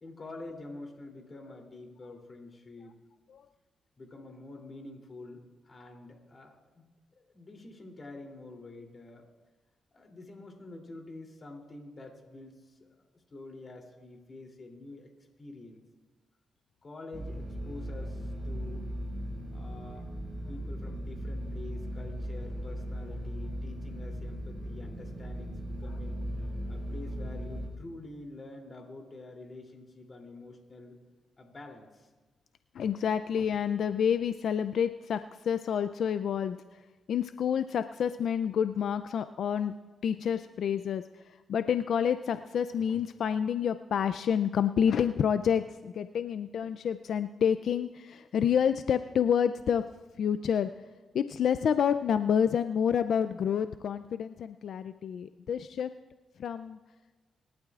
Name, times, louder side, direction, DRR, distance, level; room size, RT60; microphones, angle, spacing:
voice 1, 0.0-3.0 4.0-6.9 7.1-9.2 9.9-12.9 13.3-15.1 15.4-15.8 16.8-18.8 19.5-20.1 20.5-26.1 26.7-31.0 31.4-32.1, left 2 dB, 40° left, 2 dB, 2.9 m, -47 dB
sound 1, 17.1-27.7, equal, 25° right, 5.3 m, -37 dB
voice 2, 32.7-36.8 37.1-39.7 40.0-49.8 50.2-50.7 51.1-55.9 56.4-56.8, left 8 dB, 70° left, 11 dB, 0.4 m, -28 dB
26.0 x 12.0 x 2.4 m, 1.2 s
cardioid pair, 75°, 0 cm